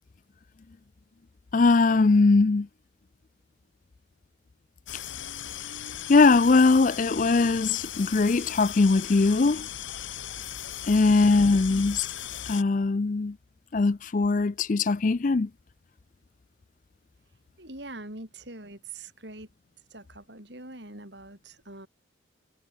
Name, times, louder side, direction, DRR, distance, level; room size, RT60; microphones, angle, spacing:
voice 1, 1.5-2.7 6.1-9.7 10.9-12.1 12.5-13.3 13.7-15.5, left 3 dB, 40° left, 0.4 m, -21 dB
sound 1, 4.9-12.6, left 11 dB, 75° left, 1.2 m, -38 dB
voice 2, 17.6-19.5 19.9-21.9, right 2 dB, 60° right, 6.3 m, -43 dB
head